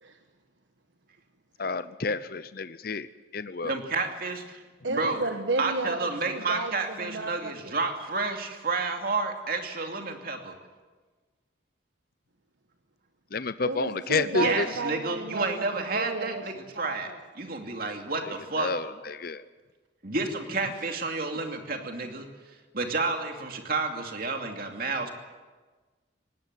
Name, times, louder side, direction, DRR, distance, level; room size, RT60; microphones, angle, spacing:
voice 1, 1.6-3.1 3.3-3.7 13.3-14.7 18.2-18.3 18.6-19.4, left 4 dB, 50° left, 14 dB, 0.7 m, -30 dB
voice 2, 3.6-4.6 4.9-5.2 5.6-10.5 14.3-17.1 17.4-18.7 20.0-22.3 22.7-25.1, right 3 dB, 50° right, 4 dB, 2.6 m, -30 dB
voice 3, 4.8-7.7 13.6-15.6 15.9-16.4 16.7-17.2, right 2 dB, 75° right, 5 dB, 1.3 m, -32 dB
19.0 x 17.5 x 9.2 m, 1.3 s
head